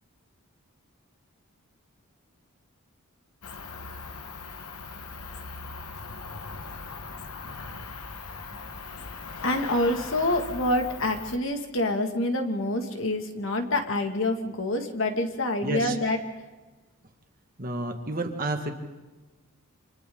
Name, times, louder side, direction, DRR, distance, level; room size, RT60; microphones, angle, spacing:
Cricket, 3.4-11.4, left 4 dB, 85° left, 1.4 m, -39 dB
voice 1, 9.4-16.2, left 1 dB, 60° left, 4 dB, 2.2 m, -27 dB
voice 2, 15.6-16.0 17.6-18.7, right 2 dB, 40° right, 4 dB, 2.0 m, -30 dB
29.0 x 27.0 x 3.9 m, 1.2 s
head